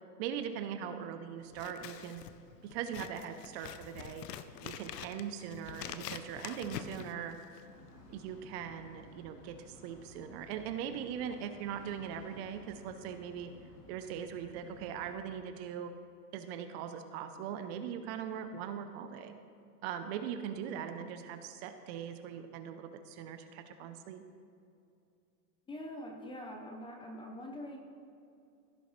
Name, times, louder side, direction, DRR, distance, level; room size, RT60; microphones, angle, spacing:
voice 1, 0.2-2.2 2.6-4.2 4.6-7.4 8.1-13.5 13.9-15.9 16.3-19.3 19.8-24.2, right 8 dB, 40° right, 9 dB, 0.7 m, -40 dB
Scissors, 1.5-7.8, left 9 dB, 90° left, 0.8 m, -46 dB
sound 1, 7.6-15.2, left 1 dB, 75° left, 2.5 m, -55 dB
voice 2, 25.7-27.8, left 1 dB, 10° left, 2 dB, 0.6 m, -44 dB
15.5 x 6.9 x 3.2 m, 2.6 s
supercardioid pair, 140°, 47 cm